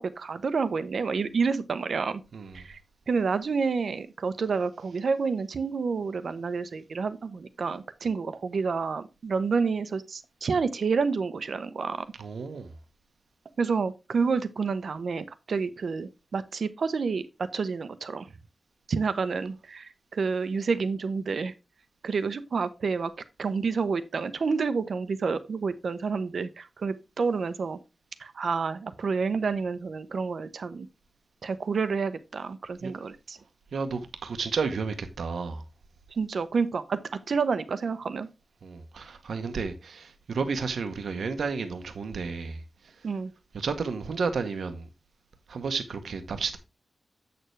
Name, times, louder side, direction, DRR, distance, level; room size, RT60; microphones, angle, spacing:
voice 1, 0.0-2.2 2.5-2.8 3.1-12.1 13.6-18.3 18.9-21.5 22.0-23.1 23.4-27.8 28.2-30.9 31.4-33.4 36.1-37.0 37.3-38.3 43.0-43.3, right 5 dB, 65° right, 0.7 m, -29 dB
voice 2, 12.2-12.7 32.8-32.9 33.7-35.6 38.6-42.6 43.5-44.9 45.5-46.6, right 5 dB, 85° right, 1.0 m, -32 dB
7.8 x 6.7 x 3.2 m
wide cardioid pair, 160°, 0 cm